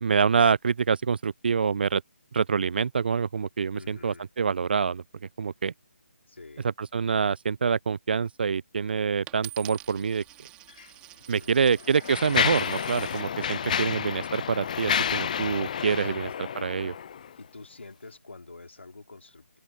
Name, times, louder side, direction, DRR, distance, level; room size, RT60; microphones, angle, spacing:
voice 1, 0.0-2.0 2.3-5.7 6.6-10.2 11.3-17.0, right 6 dB, 50° right, 0.4 m, -26 dB
voice 2, 3.7-4.3 6.3-6.7 11.4-11.8 13.6-14.1 16.1-16.4 17.4-19.6, left 3 dB, 70° left, 4.1 m, -47 dB
Coin (dropping), 9.3-13.3 14.0-14.4, right 17 dB, 15° right, 3.8 m, -47 dB
Mechanisms, 10.7-10.9 11.6-17.3, left 8 dB, 35° left, 0.4 m, -30 dB
figure-of-eight pair, 150°, 7 cm